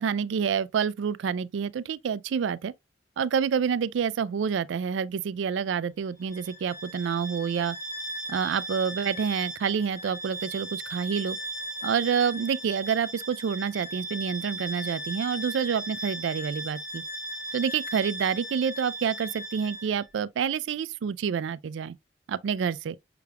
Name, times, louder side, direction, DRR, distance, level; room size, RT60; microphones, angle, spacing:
voice 1, 0.0-2.7 3.2-7.8 8.3-11.4 11.8-17.0 17.5-22.0 22.3-23.0, right 7 dB, 85° right, 0.3 m, -28 dB
Bowed string instrument, 6.2-20.1, right 1 dB, 20° left, 0.9 m, -37 dB
5.8 x 3.4 x 2.2 m
head